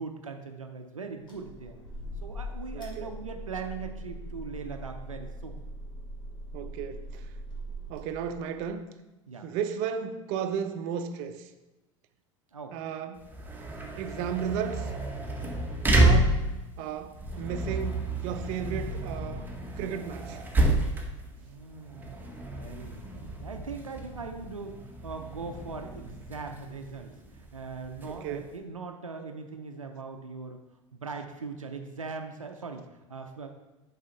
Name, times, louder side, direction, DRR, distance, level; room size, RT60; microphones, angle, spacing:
voice 1, 0.0-1.8 2.2-5.6 9.3-9.5 12.5-12.8 21.4-30.6 30.9-33.5, right 4 dB, 90° right, 5 dB, 0.6 m, -40 dB
sound 1, 1.3-8.7, equal, 30° left, 2.6 m, -41 dB
voice 2, 2.7-3.1 6.5-7.3 7.9-8.8 9.4-11.5 12.7-13.3 14.0-14.9 15.9-16.5 16.8-20.4 28.0-28.5, right 7 dB, 55° right, 8 dB, 0.7 m, -34 dB
sound 2, 13.2-28.5, right 1 dB, 10° right, 1.6 m, -30 dB
7.4 x 5.7 x 4.3 m, 1.0 s
figure-of-eight pair, 80°, 17 cm